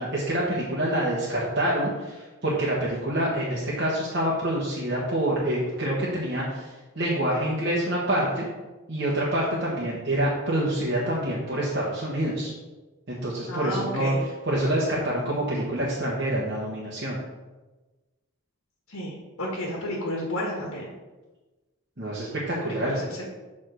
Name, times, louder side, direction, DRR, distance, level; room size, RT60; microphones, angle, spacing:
voice 1, 0.0-6.7 7.0-8.4 8.9-12.5 13.1-14.1 14.4-17.2 22.0-23.0, right 1 dB, 50° right, -6 dB, 1.1 m, -26 dB
voice 2, 13.5-14.2 18.9-20.9 22.6-23.3, left 1 dB, 90° left, -2 dB, 1.4 m, -32 dB
6.8 x 3.6 x 6.1 m, 1.2 s
head